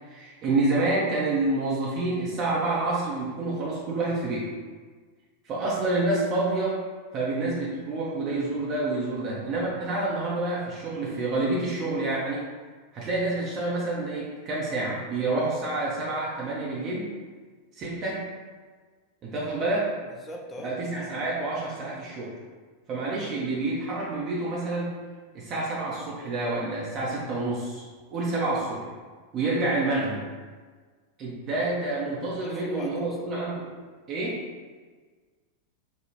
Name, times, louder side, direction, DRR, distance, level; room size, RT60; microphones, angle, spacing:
voice 1, 0.1-4.5 5.4-6.8 7.1-12.5 12.9-17.1 17.8-18.2 19.2-19.9 20.6-22.3 22.9-24.9 25.3-27.8 28.1-28.9 29.3-30.2 31.2-33.7 34.1-34.4, right 2 dB, 35° right, -5 dB, 0.7 m, -28 dB
voice 2, 20.1-20.8 32.3-33.2, left 1 dB, 20° left, 1 dB, 0.5 m, -40 dB
5.0 x 2.3 x 3.0 m, 1.5 s
figure-of-eight pair, 90°, 0 cm